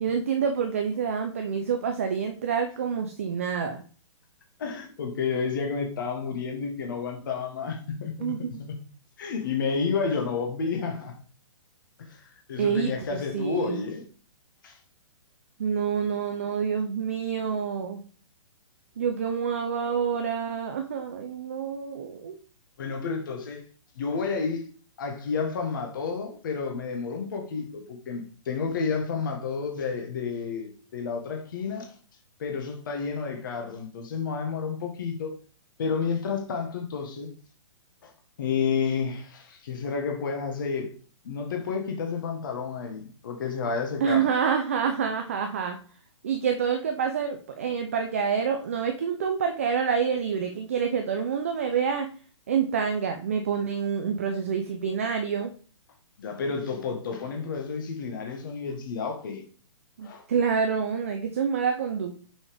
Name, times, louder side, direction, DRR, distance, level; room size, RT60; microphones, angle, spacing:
voice 1, 0.0-3.8 8.2-8.6 12.6-13.9 15.6-18.0 19.0-22.4 44.0-45.8 46.2-52.1 52.5-55.5 60.0-62.1, right 6 dB, 25° right, 0.4 m, -27 dB
voice 2, 4.6-8.3 8.6-8.8 9.2-11.1 12.1-14.0 14.6-14.8 22.8-23.6 23.9-24.6 25.0-31.9 32.4-35.4 35.8-37.3 38.0-38.1 38.4-40.9 41.2-44.3 56.2-59.4 60.0-60.3, left 5 dB, 40° left, 1.2 m, -30 dB
6.0 x 5.3 x 3.4 m
hypercardioid pair, 180°, 16 cm